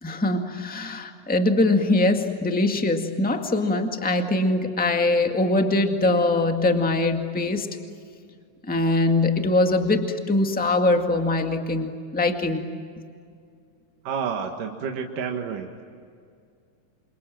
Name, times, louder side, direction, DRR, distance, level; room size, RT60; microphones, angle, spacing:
voice 1, 0.0-7.7 8.7-12.6, left 2 dB, 5° left, 4 dB, 1.0 m, -22 dB
voice 2, 14.0-15.7, right 6 dB, 75° right, 2 dB, 3.2 m, -29 dB
28.5 x 27.5 x 7.6 m, 2.3 s
omnidirectional pair, 3.8 m